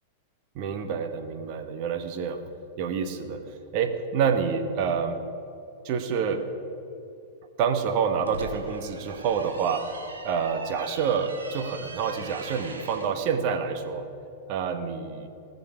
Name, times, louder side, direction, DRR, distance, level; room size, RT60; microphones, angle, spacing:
voice 1, 0.5-2.4 2.8-5.2 5.8-6.4 7.6-9.9 10.2-14.1 14.5-15.3, right 6 dB, 50° right, 7 dB, 1.3 m, -27 dB
sound 1, 8.0-13.1, right 3 dB, 85° right, 2.0 m, -41 dB
20.0 x 6.9 x 5.2 m, 2.7 s
hypercardioid pair, 100°, 0 cm